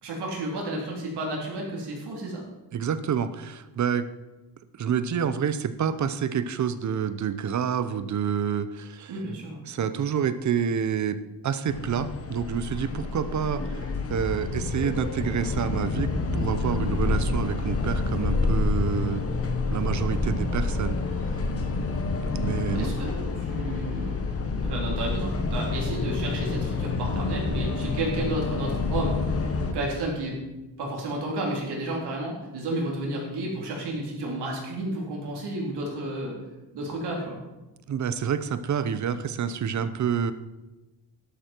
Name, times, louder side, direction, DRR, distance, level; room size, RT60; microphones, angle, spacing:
voice 1, 0.0-2.4 9.1-9.6 22.7-24.2 24.6-30.4 30.8-36.4 36.7-37.4, right 1 dB, 70° right, -2 dB, 3.8 m, -32 dB
voice 2, 2.7-4.1 4.7-9.2 9.7-13.8 14.1-19.2 19.7-21.0 21.2-21.3 22.3-22.9 37.9-40.3, right 8 dB, 45° right, 13 dB, 0.7 m, -28 dB
sound 1, 11.7-29.7, left 3 dB, 35° left, 1.3 m, -28 dB
sound 2, 25.3-31.2, left 2 dB, 10° left, 0.8 m, -38 dB
12.0 x 12.0 x 4.5 m, 1.1 s
cardioid pair, 170°, 42 cm